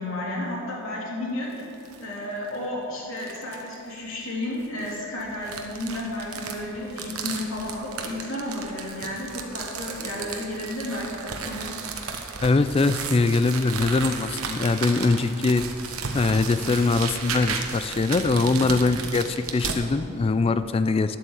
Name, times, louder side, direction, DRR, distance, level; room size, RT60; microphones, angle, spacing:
voice 1, 0.0-1.5 2.0-11.7, left 1 dB, 65° left, -4 dB, 3.2 m, -32 dB
sound 1, 1.5-2.0 2.5-2.6 3.2-3.7 4.6-19.8, right 5 dB, 90° right, 1.1 m, -34 dB
voice 2, 12.4-15.6 16.1-21.2, left 3 dB, 25° left, 12 dB, 0.3 m, -22 dB
10.5 x 7.9 x 7.2 m, 2.6 s
head